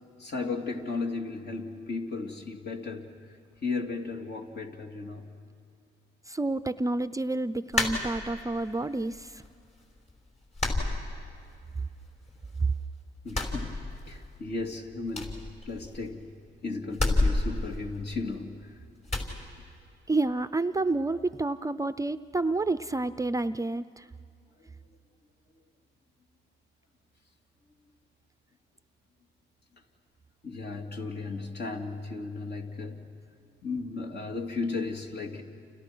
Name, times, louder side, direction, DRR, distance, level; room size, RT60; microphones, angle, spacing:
voice 1, 0.2-3.1 3.6-5.3 13.2-15.4 15.7-16.3 16.6-18.7 30.4-33.1 33.6-35.4, left 3 dB, 55° left, 2 dB, 3.2 m, -35 dB
voice 2, 6.3-9.4 12.6-12.7 20.1-24.1, right 2 dB, 15° right, 12 dB, 0.6 m, -29 dB
sound 1, 7.7-8.6 9.0-9.7 10.0-10.1 10.5-11.7 12.0-12.8 13.2-14.4 14.6-14.7 15.1-16.2 16.9-18.6 19.1-19.3, left 2 dB, 35° left, 5.6 m, -30 dB
29.5 x 29.5 x 6.2 m, 2.5 s
cardioid pair, 90°, 20 cm